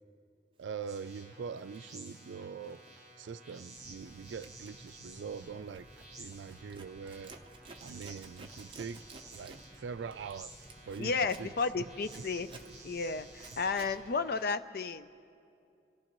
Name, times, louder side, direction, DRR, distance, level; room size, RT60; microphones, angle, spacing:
voice 1, 0.6-2.8 3.2-5.9 6.2-7.3 7.8-9.0 9.3-12.2, right 6 dB, 85° right, 14 dB, 0.4 m, -43 dB
Zipper (clothing), 0.8-1.0 1.5-2.9 3.2-3.5 3.8-14.0, right 3 dB, 30° right, 0.6 m, -55 dB
sound 1, 0.9-14.4, right 2 dB, 5° right, 3.7 m, -53 dB
sound 2, 3.8-14.2, equal, 10° left, 0.9 m, -58 dB
voice 2, 11.0-12.5 12.8-15.1, left 4 dB, 55° left, 11 dB, 0.4 m, -33 dB
27.5 x 14.5 x 3.0 m, 2.5 s
head